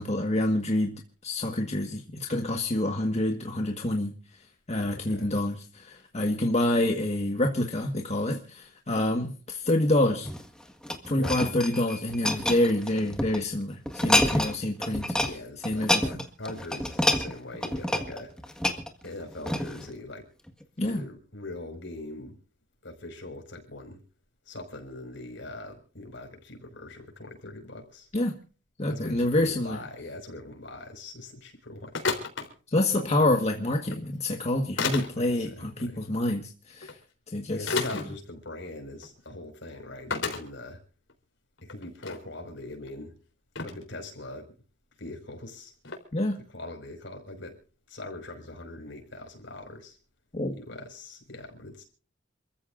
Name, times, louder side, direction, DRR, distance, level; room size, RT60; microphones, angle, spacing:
voice 1, 0.0-4.1 4.7-10.3 11.1-15.1 15.6-16.0 20.8-21.0 28.1-28.3 28.8-29.8 32.7-37.0 37.3-37.8 46.1-46.4 50.3-50.5, left 1 dB, 35° left, 1.7 m, -27 dB
voice 2, 4.8-5.3 11.2-11.4 15.2-18.3 19.0-20.3 20.8-22.4 22.8-24.0 24.5-28.1 28.8-32.0 32.9-33.3 35.2-36.0 37.5-40.8 41.6-43.2 43.6-44.5 45.0-45.7 46.5-47.6 47.9-50.0 50.6-51.8, left 2 dB, 70° left, 5.8 m, -42 dB
sound 1, 10.1-13.4 13.9-14.6 14.8-15.3 15.6-19.9 20.5-20.6, left 1 dB, 5° left, 1.7 m, -28 dB
sound 2, 31.9-32.5 33.8-34.0 34.8-35.1 36.8-36.9 37.7-38.0 38.9-39.1 39.3-39.4 40.1-40.4 41.1-41.2 41.6-42.2 42.9-43.0 43.6-43.8 45.8-46.0, left 4 dB, 85° left, 3.9 m, -30 dB
28.0 x 14.5 x 2.6 m
head